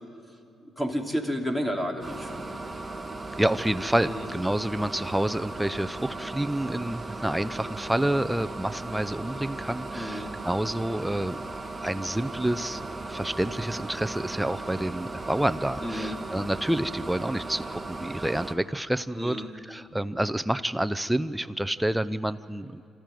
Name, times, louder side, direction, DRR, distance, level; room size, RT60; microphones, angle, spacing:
voice 1, 0.6-2.6 4.0-4.3 9.9-10.3 15.8-16.2 19.1-19.5, equal, 10° left, 2 dB, 2.9 m, -31 dB
sound 1, 2.0-18.5, right 2 dB, 25° right, 1.5 m, -37 dB
voice 2, 3.4-11.4 11.8-22.9, right 1 dB, 5° right, 12 dB, 0.6 m, -28 dB
26.0 x 14.0 x 9.2 m, 2.7 s
cardioid pair, 85°, 0 cm